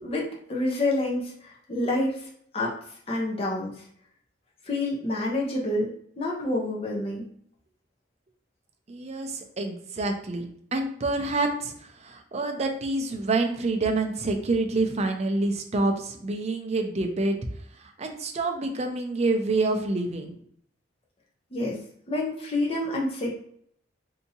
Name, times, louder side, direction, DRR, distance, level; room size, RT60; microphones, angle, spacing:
voice 1, 0.0-2.3 2.5-2.7 3.1-3.7 4.7-7.3 21.5-21.8 22.1-23.3, left 2 dB, 30° left, -3 dB, 0.7 m, -28 dB
voice 2, 8.9-17.4 17.7-20.3, right 2 dB, 35° right, 4 dB, 0.5 m, -27 dB
3.5 x 2.8 x 2.8 m, 0.64 s
head